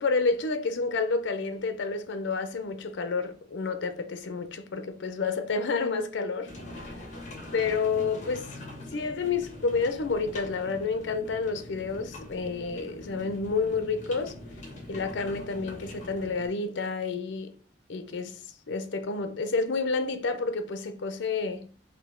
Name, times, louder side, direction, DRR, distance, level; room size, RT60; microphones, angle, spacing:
voice 1, 0.0-6.5 7.5-8.5 8.9-14.3 14.9-17.5 17.9-21.7, left 4 dB, 75° left, 0.5 m, -29 dB
sound 1, 6.4-16.5, left 1 dB, 40° left, 1.4 m, -43 dB
4.0 x 2.7 x 3.6 m
head